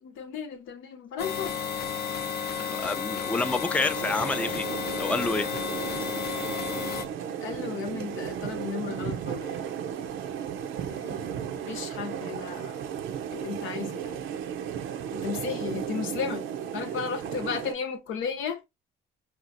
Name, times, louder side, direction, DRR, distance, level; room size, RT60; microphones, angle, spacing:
voice 1, 0.0-1.6 7.4-9.8 10.9-11.3 11.7-12.8 13.3-14.4 15.1-16.5 16.7-18.7, left 6 dB, 85° left, 0.8 m, -34 dB
sound 1, 1.2-7.1, left 6 dB, 55° left, 0.6 m, -32 dB
voice 2, 2.6-4.7 5.0-5.5, left 3 dB, 5° left, 0.4 m, -28 dB
sound 2, 3.9-17.7, right 8 dB, 80° right, 0.6 m, -35 dB
4.3 x 2.4 x 2.5 m
cardioid pair, 90°, 20 cm